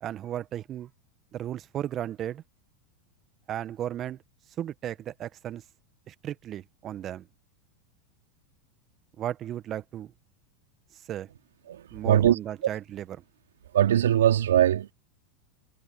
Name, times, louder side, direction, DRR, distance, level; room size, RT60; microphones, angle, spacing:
voice 1, 0.0-0.9 1.3-2.4 3.5-4.2 4.6-5.6 6.1-7.3 9.2-10.1 11.1-11.3 11.9-13.1, right 11 dB, 35° right, 1.6 m, -35 dB
voice 2, 11.7-12.4 13.7-14.9, right 11 dB, 80° right, 3.3 m, -21 dB
hypercardioid pair, 100°, 0 cm